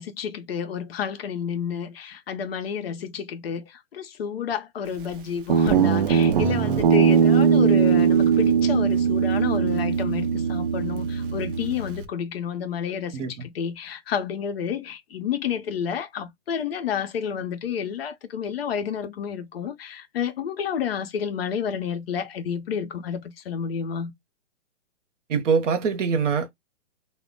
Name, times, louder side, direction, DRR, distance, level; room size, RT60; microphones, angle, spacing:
voice 1, 0.0-24.1, left 7 dB, 55° left, 0.6 m, -30 dB
Guitar, 5.5-12.1, right 7 dB, 45° right, 0.5 m, -20 dB
voice 2, 13.1-13.5 25.3-26.5, right 6 dB, 85° right, 0.8 m, -24 dB
2.1 x 2.0 x 3.7 m
hypercardioid pair, 160°, 36 cm